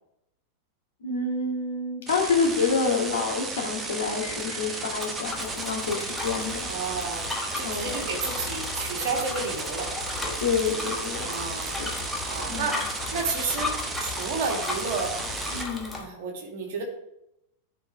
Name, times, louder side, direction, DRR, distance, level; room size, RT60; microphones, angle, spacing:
voice 1, 1.0-6.7 7.6-8.1 10.4-11.3 11.8-11.9 12.5-12.8 15.5-15.9, left 4 dB, 65° left, -1 dB, 1.8 m, -28 dB
sound 1, 2.1-15.7, right 3 dB, 20° right, 0.8 m, -34 dB
Bicycle, 4.3-16.0, left 3 dB, 10° left, 1.3 m, -35 dB
voice 2, 6.7-10.0 11.2-11.8 12.3-15.2 16.0-16.8, right 4 dB, 50° right, 1 dB, 1.8 m, -31 dB
12.5 x 4.4 x 3.3 m, 0.84 s
figure-of-eight pair, 90°, 0 cm